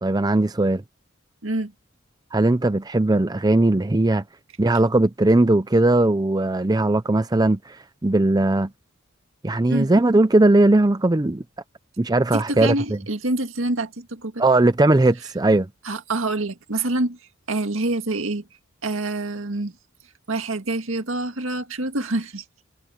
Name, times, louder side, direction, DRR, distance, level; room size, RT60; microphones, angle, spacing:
voice 1, 0.0-0.8 2.3-4.2 4.6-8.7 9.4-11.4 12.0-13.0 14.4-15.7, right 2 dB, 20° right, 0.5 m, -19 dB
voice 2, 12.3-14.4 15.8-17.2 17.5-18.4 18.8-19.7 20.3-22.4, right 2 dB, 75° right, 2.0 m, -26 dB
head